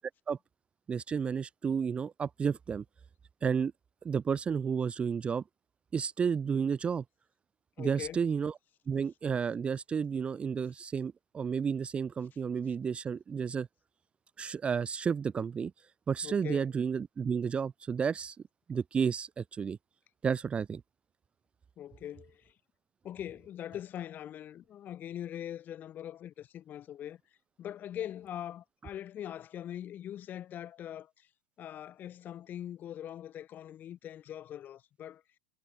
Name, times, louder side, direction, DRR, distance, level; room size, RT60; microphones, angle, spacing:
voice 1, 0.9-2.8 3.4-3.7 4.0-5.4 5.9-7.0 7.8-8.5 8.9-13.7 14.4-15.7 16.1-18.4 18.7-19.8 20.2-20.8, right 6 dB, 20° right, 0.6 m, -31 dB
voice 2, 7.8-8.2 16.2-16.7 21.8-22.5 23.0-27.2 27.6-31.3 31.6-35.2, left 11 dB, 30° left, 1.7 m, -42 dB
hypercardioid pair, 95°, 6 cm